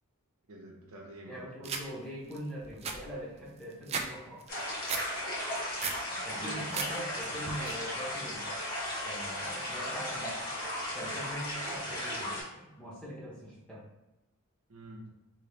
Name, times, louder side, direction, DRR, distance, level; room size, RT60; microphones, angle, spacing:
voice 1, 0.5-1.7 6.3-6.8 14.7-15.1, right 2 dB, 70° right, -2 dB, 0.9 m, -47 dB
voice 2, 1.3-4.4 6.2-8.4 9.0-10.5 10.9-13.8, equal, 5° left, -6 dB, 1.0 m, -42 dB
sound 1, 1.6-1.8 2.3-2.4 2.6-4.1 4.4-5.0 5.4-6.0 6.4-6.9 7.2-7.7, right 5 dB, 30° right, 0.3 m, -36 dB
sound 2, 4.5-12.4, left 1 dB, 40° left, 1.3 m, -36 dB
3.2 x 3.0 x 3.3 m, 0.97 s
head